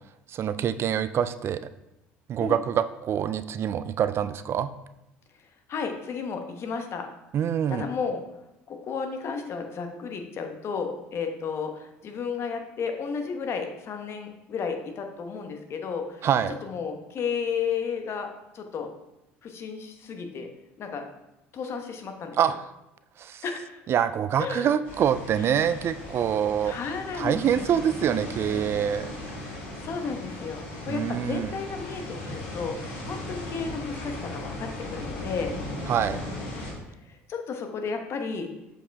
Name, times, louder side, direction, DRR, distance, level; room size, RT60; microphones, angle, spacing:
voice 1, 0.3-1.6 2.3-4.7 7.3-7.9 16.2-16.6 22.4-22.6 23.2-23.4 23.9-26.7 27.2-29.1 30.9-31.5 35.9-36.2, right 9 dB, 45° right, 13 dB, 0.4 m, -25 dB
voice 2, 5.7-7.1 7.7-8.2 8.7-16.3 16.6-18.3 18.5-18.9 19.4-20.5 20.8-21.0 21.5-22.4 23.4-23.8 24.4-24.7 25.4-25.7 26.6-27.4 29.8-35.6 37.1-38.5, left 5 dB, 50° left, 5 dB, 1.0 m, -33 dB
sound 1, 24.8-36.7, left 1 dB, 90° left, 2.2 m, -37 dB
7.2 x 4.9 x 3.4 m, 0.91 s
supercardioid pair, 80°, 6 cm